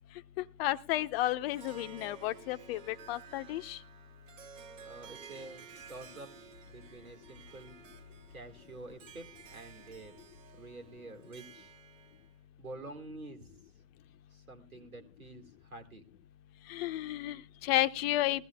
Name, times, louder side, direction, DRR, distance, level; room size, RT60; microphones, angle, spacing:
voice 1, 0.4-3.8 16.7-18.5, left 15 dB, 45° left, 12 dB, 0.7 m, -32 dB
Harp, 1.4-12.3, right 8 dB, 65° right, 1.3 m, -54 dB
voice 2, 4.8-6.4 6.7-7.8 8.3-10.2 10.5-11.7 12.6-13.7 14.3-16.1, right 2 dB, 90° right, 6 dB, 2.0 m, -48 dB
20.5 x 15.0 x 2.3 m, 0.32 s
figure-of-eight pair, 95°, 41 cm